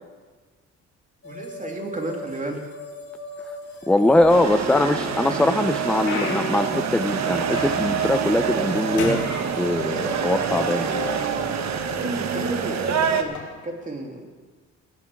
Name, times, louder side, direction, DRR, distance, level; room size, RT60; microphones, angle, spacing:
sound 1, 1.2-11.3, left 1 dB, 50° left, 2.8 m, -39 dB
voice 1, 1.2-2.6 4.7-4.8 11.9-14.3, right 2 dB, 25° right, 1 dB, 2.8 m, -32 dB
voice 2, 3.9-9.2 9.5-11.2, left 1 dB, 5° left, 8 dB, 0.6 m, -22 dB
sound 2, 4.1-4.8 5.3-8.1 8.4-8.7 9.0-10.2 11.0-11.1 11.8-12.0 13.2-13.4, left 3 dB, 75° left, 3.0 m, -33 dB
sound 3, 4.3-13.2, right 7 dB, 65° right, 1.3 m, -26 dB
18.0 x 6.8 x 7.7 m, 1.4 s
cardioid pair, 90°, 30 cm